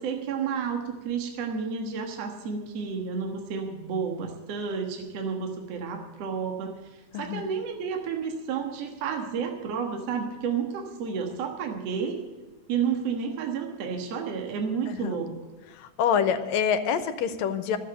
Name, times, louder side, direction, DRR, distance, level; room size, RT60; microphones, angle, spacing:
voice 1, 0.0-12.2 12.7-15.3, right 6 dB, 60° right, 3 dB, 2.4 m, -31 dB
voice 2, 15.7-17.8, left 7 dB, 75° left, 9 dB, 2.1 m, -26 dB
13.0 x 7.8 x 9.7 m, 1.2 s
omnidirectional pair, 3.4 m